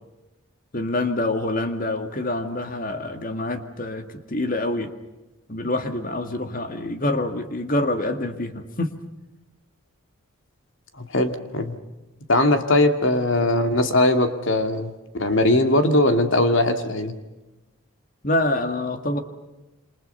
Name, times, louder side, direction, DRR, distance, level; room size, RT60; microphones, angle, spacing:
voice 1, 0.7-4.9 5.5-8.9 18.2-19.2, left 1 dB, 40° left, 8 dB, 2.1 m, -26 dB
voice 2, 11.0-11.7 12.3-17.1, left 1 dB, 60° left, 7 dB, 2.4 m, -20 dB
28.0 x 26.5 x 5.6 m, 1.1 s
head